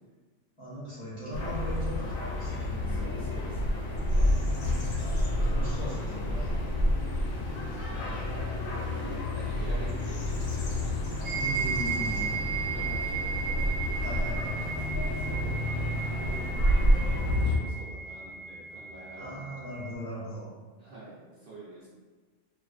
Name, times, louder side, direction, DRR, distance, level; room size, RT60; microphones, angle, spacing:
voice 1, 0.6-3.1 4.1-4.9 5.4-6.5 11.3-12.4 14.0-14.8 19.1-20.5, equal, 30° left, -11 dB, 0.7 m, -39 dB
sound 1, 1.3-17.6, left 1 dB, 90° left, 1.0 m, -29 dB
voice 2, 2.9-3.6 7.5-8.5 8.9-11.3 11.6-12.0 12.7-14.0 15.0-19.5 20.8-21.9, right 2 dB, 55° right, -9 dB, 0.7 m, -46 dB
sound 2, 11.2-19.9, right 6 dB, 85° right, 1.2 m, -35 dB
2.4 x 2.4 x 2.3 m, 1.3 s
omnidirectional pair, 1.3 m